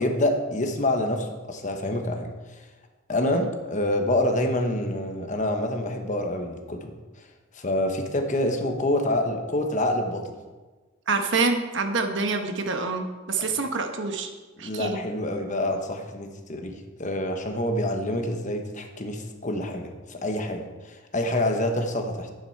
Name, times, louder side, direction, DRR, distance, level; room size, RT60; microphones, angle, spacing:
voice 1, 0.0-2.3 3.1-6.9 7.5-10.3 14.6-22.3, left 1 dB, 40° left, 4 dB, 1.2 m, -27 dB
voice 2, 11.1-14.3 14.6-15.0, right 3 dB, 65° right, 5 dB, 1.1 m, -26 dB
11.0 x 9.0 x 4.6 m, 1.3 s
head